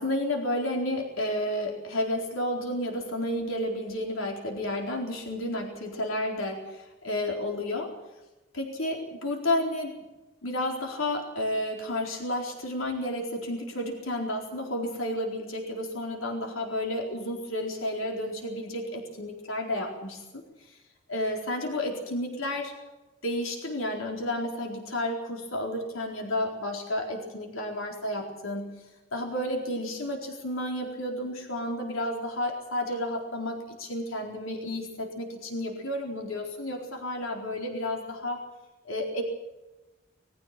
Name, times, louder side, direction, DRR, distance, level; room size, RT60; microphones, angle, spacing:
voice 1, 0.0-8.0 8.5-10.1 10.4-20.8 21.1-22.7 23.2-38.4 38.8-39.2, left 1 dB, 85° left, 1 dB, 4.3 m, -31 dB
22.5 x 15.5 x 7.6 m, 1.1 s
head